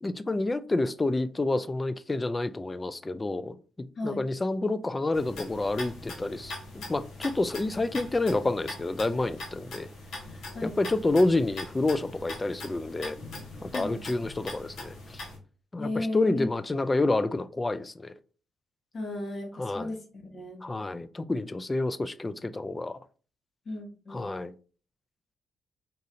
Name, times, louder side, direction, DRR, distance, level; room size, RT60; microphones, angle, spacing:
voice 1, 0.0-3.6 4.0-9.9 10.6-13.2 13.6-15.2 15.7-18.1 19.6-19.9 20.6-23.0 24.1-24.5, left 2 dB, 25° left, 0.3 m, -28 dB
sound 1, 5.1-15.4, left 2 dB, 75° left, 1.1 m, -42 dB
voice 2, 15.8-16.5 18.9-20.6 23.6-24.4, left 2 dB, 55° left, 1.2 m, -35 dB
3.9 x 2.7 x 2.5 m
supercardioid pair, 55°, 0 cm